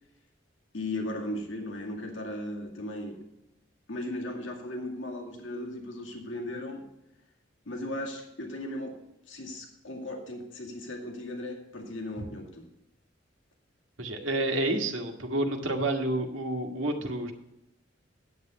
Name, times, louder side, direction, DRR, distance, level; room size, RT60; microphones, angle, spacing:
voice 1, 0.7-3.2 3.9-6.9 7.7-9.0 9.3-12.7, left 1 dB, 75° left, 1 dB, 2.2 m, -37 dB
voice 2, 14.0-17.3, right 2 dB, 85° right, 2 dB, 1.8 m, -29 dB
9.3 x 8.4 x 5.3 m, 0.92 s
head